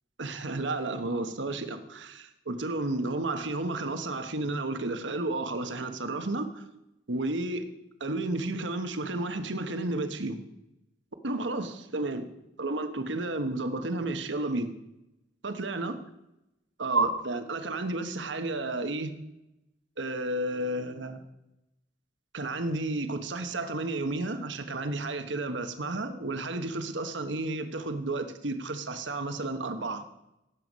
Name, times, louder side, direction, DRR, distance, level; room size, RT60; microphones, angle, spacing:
voice 1, 0.2-6.6 7.1-7.7 8.0-10.4 11.2-12.3 12.6-14.7 15.4-15.9 16.8-19.1 20.0-21.2 22.3-30.0, right 2 dB, 80° right, 8 dB, 1.3 m, -32 dB
17.5 x 7.9 x 5.3 m, 0.88 s
head